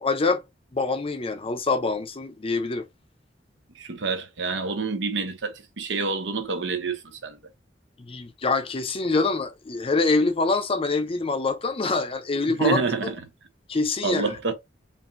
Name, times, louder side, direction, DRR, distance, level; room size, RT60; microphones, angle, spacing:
voice 1, 0.0-0.4 0.7-2.9 8.0-12.8 13.7-14.4, left 3 dB, 30° left, 0.6 m, -25 dB
voice 2, 3.7-7.4 12.6-13.2 14.0-14.5, right 4 dB, 75° right, 0.9 m, -27 dB
5.2 x 2.6 x 2.6 m
head